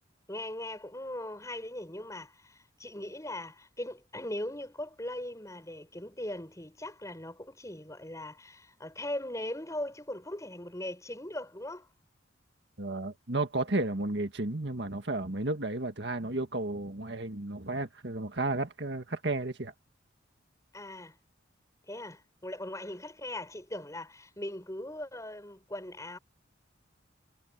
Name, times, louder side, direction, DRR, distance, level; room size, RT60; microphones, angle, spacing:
voice 1, 0.3-11.9 20.7-21.2 21.9-26.2, left 1 dB, 15° left, 6.7 m, -39 dB
voice 2, 12.8-19.7, right 2 dB, 60° right, 1.9 m, -33 dB
head